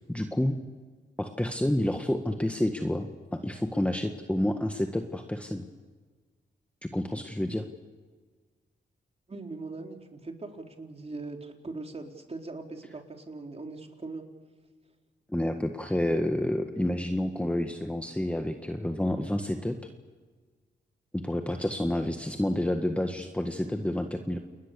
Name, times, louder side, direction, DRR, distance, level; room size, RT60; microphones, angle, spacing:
voice 1, 0.1-0.6 1.2-5.7 6.8-7.7 15.3-19.8 21.1-24.4, left 1 dB, 5° left, 5 dB, 1.7 m, -29 dB
voice 2, 9.3-14.2, right 3 dB, 35° right, 3 dB, 4.0 m, -40 dB
29.5 x 21.0 x 7.0 m, 1.5 s
cardioid pair, 70°, 19 cm